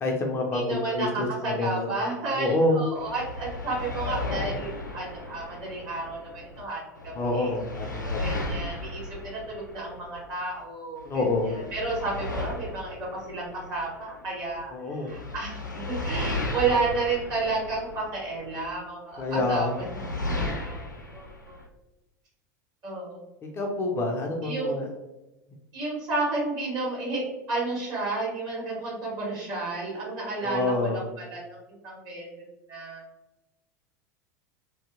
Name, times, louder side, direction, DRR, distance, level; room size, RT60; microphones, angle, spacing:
voice 1, 0.0-1.9 2.4-2.8 7.1-8.4 11.0-11.5 14.7-15.1 19.2-19.8 23.5-24.8 30.4-31.0, left 2 dB, 25° left, 0 dB, 0.5 m, -27 dB
voice 2, 0.5-7.5 8.2-20.8 21.1-21.6 22.8-23.3 24.4-24.8 25.7-33.0, right 3 dB, 45° right, -4 dB, 1.5 m, -32 dB
sound 1, 2.9-6.6 6.9-10.6 11.0-14.6 15.1-18.6 19.1-21.7, left 2 dB, 85° left, 0.4 m, -35 dB
2.7 x 2.6 x 2.5 m, 0.99 s
figure-of-eight pair, 80°, 10 cm